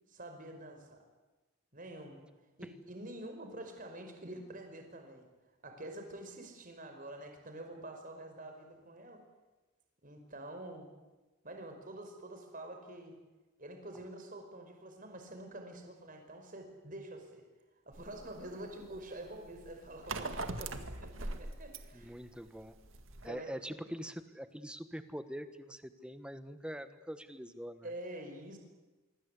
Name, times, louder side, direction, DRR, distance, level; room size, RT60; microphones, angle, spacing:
voice 1, 0.1-1.0 1.7-2.2 2.6-5.3 5.6-9.2 10.0-10.9 11.4-13.2 13.6-17.5 17.9-22.2 23.2-23.5 27.8-28.6, right 1 dB, 40° right, 5 dB, 5.3 m, -47 dB
sound 1, 17.9-23.3, right 2 dB, 75° right, 2.2 m, -42 dB
voice 2, 21.9-22.8 23.2-27.9, equal, 5° right, 10 dB, 1.4 m, -44 dB
26.0 x 24.0 x 8.4 m, 1.2 s
head